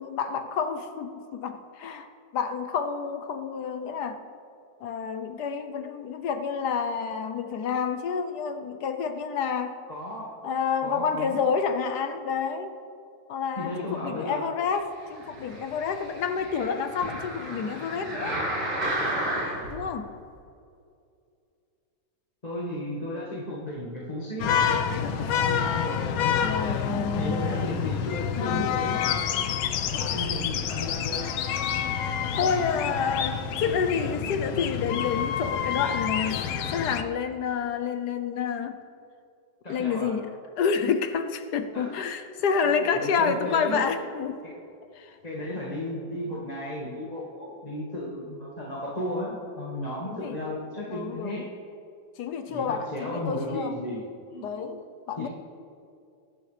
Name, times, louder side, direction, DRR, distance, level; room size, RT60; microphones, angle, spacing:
voice 1, 0.0-4.2 4.8-9.8 10.4-12.7 13.3-18.4 19.7-20.1 25.0-25.4 26.4-27.5 28.4-28.8 32.4-38.8 39.7-44.4 44.9-45.2 50.0-50.4 50.9-51.5 52.2-53.8 54.4-55.3, left 6 dB, 65° left, 8 dB, 1.2 m, -29 dB
voice 2, 9.9-10.3 10.8-11.4 13.6-14.4 22.4-24.8 25.3-26.5 26.8-29.0 29.9-31.3 39.6-40.1 41.7-41.9 42.9-43.8 44.4-44.6 45.2-51.5 52.5-54.0 54.3-54.5 55.2-55.3, left 1 dB, 20° left, -6 dB, 1.7 m, -34 dB
sound 1, 15.2-19.8 20.4-20.5, right 1 dB, 55° right, 4.5 m, -32 dB
sound 2, 24.4-37.0, left 8 dB, 80° left, 1.5 m, -28 dB
22.5 x 12.0 x 3.4 m, 2.5 s
omnidirectional pair, 2.2 m